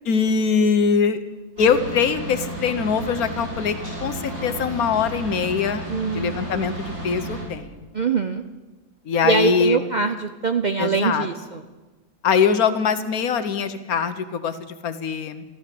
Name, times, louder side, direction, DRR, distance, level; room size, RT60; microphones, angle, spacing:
voice 1, 0.0-1.2 1.6-7.9 9.0-9.8 10.8-11.3 12.2-15.4, left 6 dB, 80° left, 10 dB, 1.5 m, -22 dB
sound 1, 1.6-7.4, right 1 dB, 90° right, 7.9 m, -32 dB
voice 2, 5.9-6.4 7.9-8.4 9.2-11.6, right 4 dB, 50° right, 7 dB, 0.5 m, -23 dB
14.0 x 13.0 x 7.7 m, 1.2 s
omnidirectional pair, 1.5 m